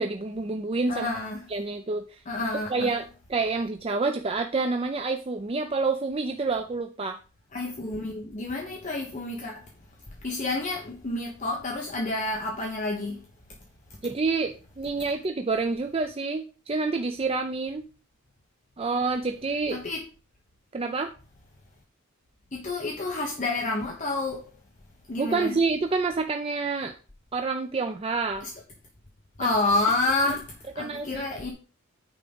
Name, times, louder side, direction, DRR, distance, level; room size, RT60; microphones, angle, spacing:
voice 1, 0.0-1.1 1.5-2.2 2.7-7.2 14.0-17.9 18.8-19.8 20.7-21.1 25.2-27.0 27.3-28.5 29.4-29.5 30.3-30.4 30.8-31.3, right 3 dB, 25° right, 0.5 m, -28 dB
voice 2, 0.9-1.4 2.3-2.9 7.5-9.7 10.2-13.2 19.7-20.0 22.5-24.5 25.1-25.6 29.4-31.5, left 2 dB, 35° left, 1.1 m, -29 dB
9.2 x 3.7 x 5.2 m
head